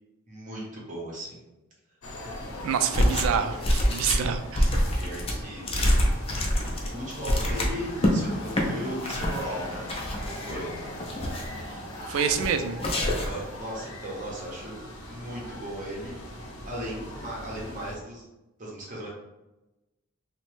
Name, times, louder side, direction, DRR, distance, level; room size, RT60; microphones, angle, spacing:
voice 1, 0.3-1.4 4.9-5.7 6.9-9.9 10.3-10.9 13.1-14.8 15.0-18.3 18.6-19.1, equal, 40° right, -4 dB, 0.8 m, -37 dB
sound 1, 2.0-18.0, left 1 dB, 80° left, 0.7 m, -40 dB
voice 2, 2.6-4.7 12.1-12.8, right 7 dB, 70° right, 7 dB, 0.3 m, -27 dB
sound 2, 2.9-3.4 3.6-8.1 8.5-8.7 9.0-9.4 9.9-10.6 11.0-11.6 12.1-12.5 12.8-13.4, equal, 30° left, 0.5 m, -26 dB
2.9 x 2.1 x 3.1 m, 0.99 s
head